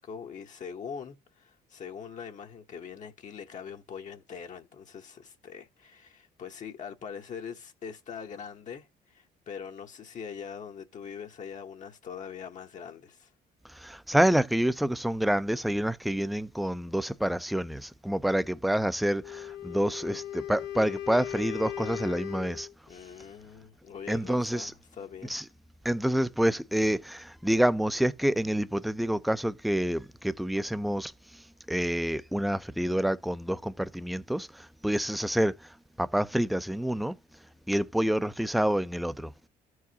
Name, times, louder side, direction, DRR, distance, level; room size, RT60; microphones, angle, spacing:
voice 1, 0.0-13.3 22.9-25.3, left 7 dB, 45° left, 1.0 m, -42 dB
voice 2, 13.8-22.7 24.1-24.7 25.3-25.4 25.8-31.1 31.7-34.5 34.8-35.5 36.0-37.1 37.7-39.3, right 1 dB, ahead, 0.5 m, -27 dB
Wind instrument woodwind instrument, 19.2-22.7, left 11 dB, 85° left, 0.9 m, -38 dB
13.5 x 4.8 x 2.8 m
cardioid pair, 110°, 17 cm